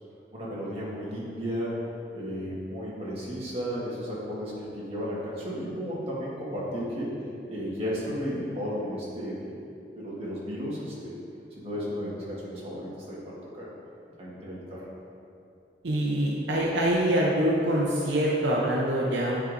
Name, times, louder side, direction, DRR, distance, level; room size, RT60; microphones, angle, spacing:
voice 1, 0.3-1.7 2.1-7.1 7.5-9.5 9.9-11.1 11.6-13.2 13.5-13.7 14.2-14.8, equal, 35° right, -7 dB, 1.5 m, -34 dB
voice 2, 15.8-19.4, right 1 dB, 75° right, -3 dB, 0.7 m, -25 dB
9.5 x 4.8 x 2.6 m, 2.6 s
head